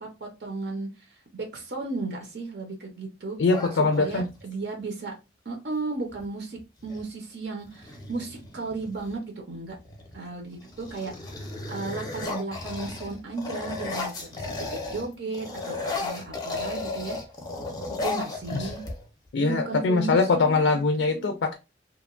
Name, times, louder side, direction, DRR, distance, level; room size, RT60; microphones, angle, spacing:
voice 1, 0.0-3.4 3.7-5.1 5.4-9.8 10.1-17.2 18.0-18.8 19.4-21.3, right 3 dB, 60° right, 0.6 m, -35 dB
voice 2, 3.4-4.3 18.5-18.7 19.3-21.6, left 3 dB, 70° left, 0.3 m, -22 dB
sound 1, 3.5-4.4 6.1-6.3 6.6-7.1 7.6-9.1 9.8-10.2 10.5-15.1 15.3-19.3, left 3 dB, 20° left, 0.5 m, -35 dB
2.9 x 2.1 x 2.3 m
head